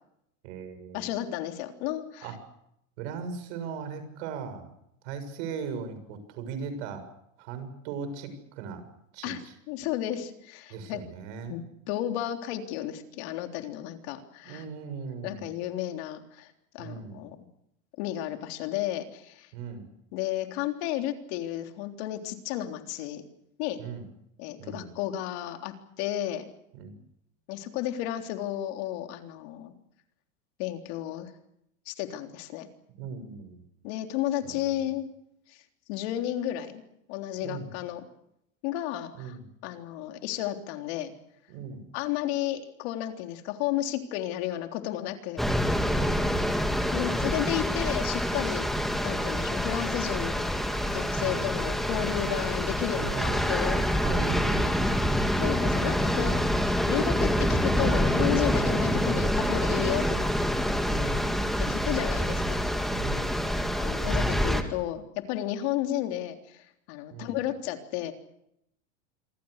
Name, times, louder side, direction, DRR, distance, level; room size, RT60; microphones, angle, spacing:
voice 1, 0.4-1.1 2.2-2.4 3.0-4.7 5.0-7.0 7.4-8.8 9.1-9.5 10.7-11.5 14.4-15.5 16.8-17.3 19.5-19.9 23.8-24.0 24.6-24.9 26.7-26.9 33.0-33.6 34.4-34.7 37.4-37.7 39.2-39.4 41.5-41.9 45.9-46.7 51.2-51.4 52.9-53.6 54.0-55.2 60.9-61.3 62.9-63.4 67.1-67.3, right 6 dB, 60° right, 9 dB, 6.9 m, -38 dB
voice 2, 0.9-2.3 9.2-11.0 11.5-14.7 15.2-17.4 18.0-19.5 20.1-23.2 23.6-23.8 24.4-26.5 27.5-29.7 30.6-31.3 31.9-32.7 33.8-35.1 35.5-35.6 35.9-36.8 37.1-38.0 38.6-39.4 39.6-41.1 41.9-45.5 46.9-50.5 50.9-53.8 55.4-56.4 56.9-60.3 61.7-62.6 63.8-68.1, left 13 dB, 55° left, 5 dB, 3.6 m, -33 dB
sound 1, 45.4-64.6, equal, ahead, 2.1 m, -26 dB
27.0 x 24.0 x 6.6 m, 0.77 s
supercardioid pair, 160°, 38 cm